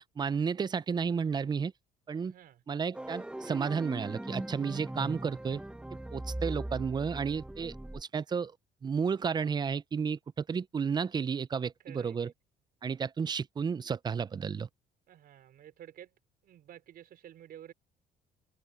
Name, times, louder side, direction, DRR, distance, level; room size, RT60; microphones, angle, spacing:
voice 1, 0.0-1.7 2.1-2.3 2.7-5.6 6.1-8.5 8.8-12.3 12.8-14.7, right 6 dB, 25° right, 0.5 m, -32 dB
voice 2, 2.2-2.6 11.8-12.3 15.1-16.1 16.4-17.7, right 11 dB, 60° right, 4.6 m, -51 dB
sound 1, 2.9-8.0, right 1 dB, 5° right, 0.9 m, -40 dB
cardioid pair, 110°, 17 cm